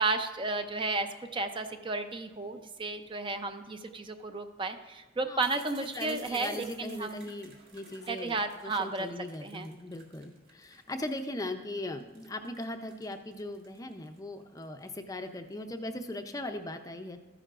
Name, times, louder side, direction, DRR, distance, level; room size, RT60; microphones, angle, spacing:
voice 1, 0.0-7.3 8.1-9.1 9.4-9.7, right 3 dB, 25° right, 7 dB, 0.5 m, -33 dB
voice 2, 5.3-17.2, left 1 dB, 20° left, 6 dB, 0.5 m, -39 dB
sound 1, 5.4-11.4 11.8-15.6, right 4 dB, 55° right, 1.9 m, -54 dB
13.5 x 10.0 x 2.5 m, 1.2 s
head